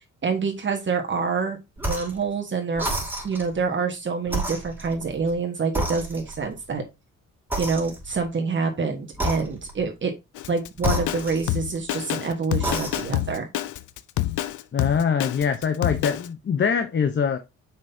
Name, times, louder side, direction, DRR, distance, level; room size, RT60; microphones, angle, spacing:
voice 1, 0.2-1.6 1.9-2.8 3.2-6.8 7.6-10.1 10.5-13.5, right 5 dB, 40° right, 1.4 m, -26 dB
sound 1, 1.8-2.2 2.8-3.5 4.3-5.4 5.8-6.5 7.5-8.3 9.1-9.9 10.8-11.9 12.5-13.2, right 1 dB, 5° right, 2.6 m, -31 dB
Drum kit, 10.4-16.3, left 14 dB, 80° left, 0.6 m, -27 dB
voice 2, 14.7-17.4, left 6 dB, 40° left, 0.9 m, -23 dB
6.3 x 5.5 x 2.8 m
cardioid pair, 90°, 30 cm